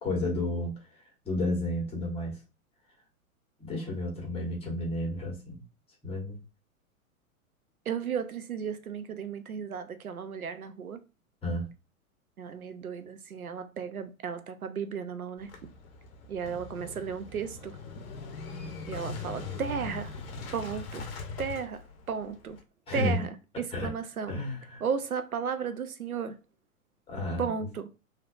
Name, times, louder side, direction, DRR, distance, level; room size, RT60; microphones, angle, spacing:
voice 1, 0.0-0.7 1.2-2.3 3.6-5.6 6.0-6.4 11.4-11.6 22.9-23.2 23.7-23.9 24.3-24.8 27.1-27.5, left 1 dB, 15° left, 1.3 m, -31 dB
voice 2, 7.9-11.0 12.4-15.5 16.3-17.8 18.9-20.1 20.5-21.0 21.4-22.6 22.9-23.3 23.6-24.4 24.8-26.4 27.4-27.9, right 6 dB, 85° right, 0.5 m, -34 dB
Motorcycle / Engine starting, 15.4-22.6, left 3 dB, 45° left, 0.7 m, -41 dB
3.2 x 2.8 x 2.4 m
figure-of-eight pair, 100°, 42 cm